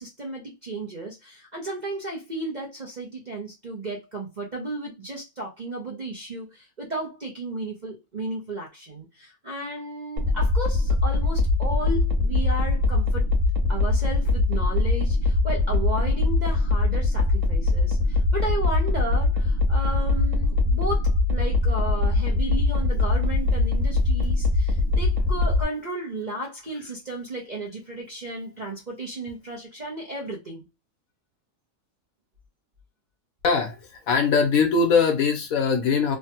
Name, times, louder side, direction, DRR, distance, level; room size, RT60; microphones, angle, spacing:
voice 1, 0.0-13.3 13.7-30.7, right 2 dB, 40° right, 0.7 m, -34 dB
sound 1, 10.2-25.6, left 3 dB, 60° right, 1.0 m, -22 dB
voice 2, 33.4-36.2, left 5 dB, 65° left, 1.2 m, -21 dB
3.2 x 2.3 x 2.9 m
omnidirectional pair, 1.6 m